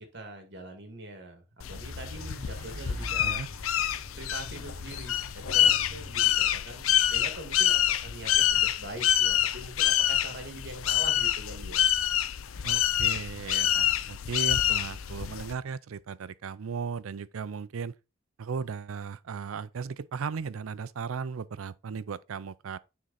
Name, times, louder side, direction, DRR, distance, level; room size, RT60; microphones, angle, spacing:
voice 1, 0.0-3.4 4.1-11.8, right 1 dB, 55° right, 2.2 m, -43 dB
sound 1, 1.6-15.5, left 11 dB, 90° left, 0.5 m, -27 dB
sound 2, 1.7-6.3, equal, 40° right, 4.3 m, -44 dB
voice 2, 12.6-17.9 18.4-22.8, right 5 dB, 90° right, 0.5 m, -36 dB
9.5 x 3.8 x 4.1 m
head